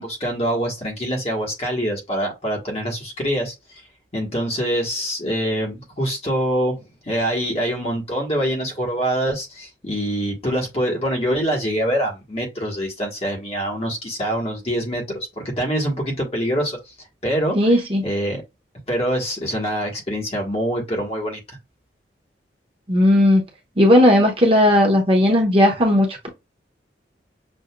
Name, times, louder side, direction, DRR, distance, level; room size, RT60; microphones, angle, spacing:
voice 1, 0.0-3.8 4.1-16.9 17.2-18.4 18.9-21.6, equal, 35° left, 1.3 m, -25 dB
voice 2, 17.5-18.0 22.9-23.4 23.8-26.3, left 1 dB, 30° right, 0.9 m, -16 dB
6.2 x 2.6 x 2.2 m
head